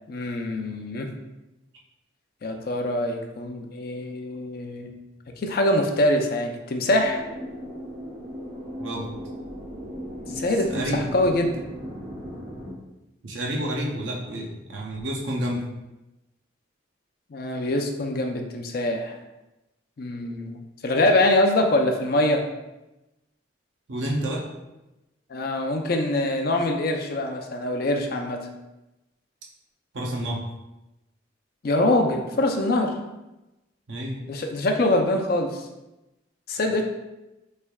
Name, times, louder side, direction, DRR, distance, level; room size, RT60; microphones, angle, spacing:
voice 1, 0.1-1.1 2.4-4.9 5.4-7.2 10.3-11.6 17.3-19.2 20.0-22.4 25.3-28.5 31.6-32.9 34.3-35.6 36.5-36.8, left 1 dB, 50° left, 3 dB, 0.4 m, -24 dB
sound 1, 7.0-12.7, equal, 35° right, 1.0 m, -37 dB
voice 2, 10.7-11.1 13.2-15.6 23.9-24.4 29.9-30.4 33.9-34.2, right 1 dB, 75° right, -2 dB, 0.6 m, -29 dB
3.5 x 3.2 x 2.3 m, 0.99 s
head